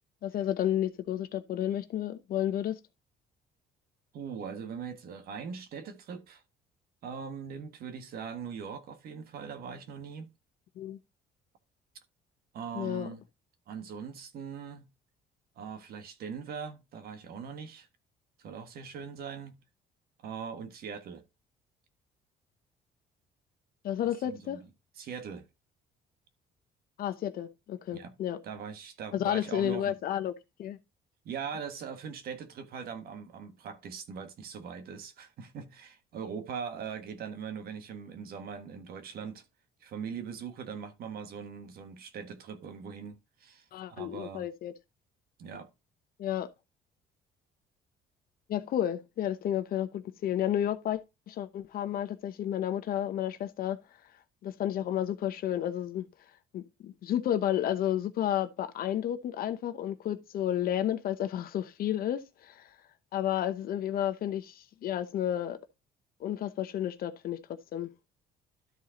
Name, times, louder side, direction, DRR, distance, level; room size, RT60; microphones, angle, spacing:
voice 1, 0.2-2.8 10.8-11.0 12.7-13.1 23.8-24.6 27.0-28.4 29.1-30.3 30.6-30.8 43.7-44.7 46.2-46.5 48.5-51.0 51.3-53.8 54.4-56.1 56.5-62.7 63.1-65.6 66.2-67.4 67.7-67.9, left 11 dB, 60° left, 0.9 m, -31 dB
voice 2, 4.1-6.4 7.0-10.3 12.5-13.2 13.7-14.9 15.6-17.9 18.4-19.5 20.2-21.2 24.2-24.6 25.0-25.5 27.9-28.1 28.4-30.0 31.2-39.4 39.8-44.5 45.4-45.7, right 6 dB, 65° right, 1.5 m, -41 dB
12.5 x 4.2 x 3.8 m
cardioid pair, 110°, 17 cm